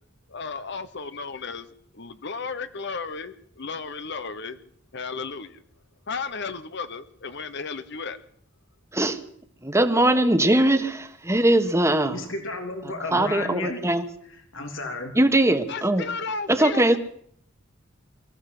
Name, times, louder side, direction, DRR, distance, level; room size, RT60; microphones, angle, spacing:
voice 1, 0.3-1.7 1.9-4.6 4.9-5.6 6.1-8.2 15.7-17.0, left 4 dB, 60° left, 11 dB, 1.0 m, -34 dB
voice 2, 9.6-12.2 13.1-14.1 15.1-16.0 16.5-17.0, right 1 dB, 15° right, 8 dB, 1.6 m, -21 dB
voice 3, 12.0-13.8 14.5-15.1, left 2 dB, 90° left, 4 dB, 3.4 m, -32 dB
23.5 x 15.0 x 8.0 m, 0.67 s
head